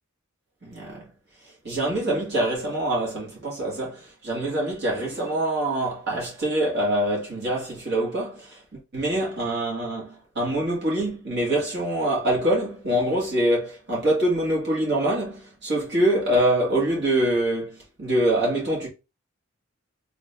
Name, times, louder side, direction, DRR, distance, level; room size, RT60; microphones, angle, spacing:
voice 1, 0.6-1.1 1.6-18.9, right 1 dB, 55° right, 1.9 m, -25 dB
3.7 x 2.7 x 3.4 m
head